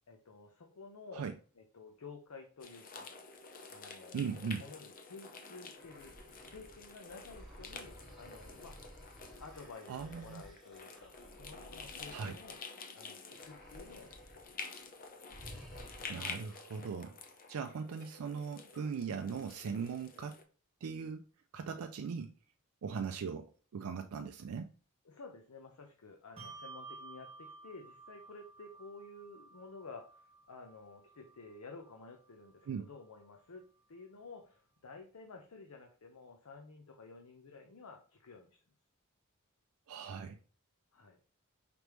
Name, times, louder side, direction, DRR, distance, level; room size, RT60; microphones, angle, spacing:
voice 1, 0.1-1.3 1.6-3.1 3.7-6.1 6.5-9.0 9.4-12.6 12.9-14.1 25.0-33.6 33.9-38.6 40.9-41.2, left 3 dB, 75° left, 0.7 m, -52 dB
sound 1, 2.6-20.4, left 4 dB, 40° left, 0.6 m, -49 dB
voice 2, 4.1-4.6 9.9-10.4 12.1-12.4 16.1-17.2 17.5-20.4 20.8-21.3 21.5-22.3 22.8-24.7 32.7-32.9 39.9-40.4, right 6 dB, 65° right, 0.4 m, -39 dB
sound 2, 5.7-12.8 13.3-14.5 14.8-15.0 15.3-16.4, equal, ahead, 1.4 m, -55 dB
Bell, 26.4-33.2, right 3 dB, 25° right, 1.2 m, -54 dB
5.1 x 3.3 x 3.0 m
head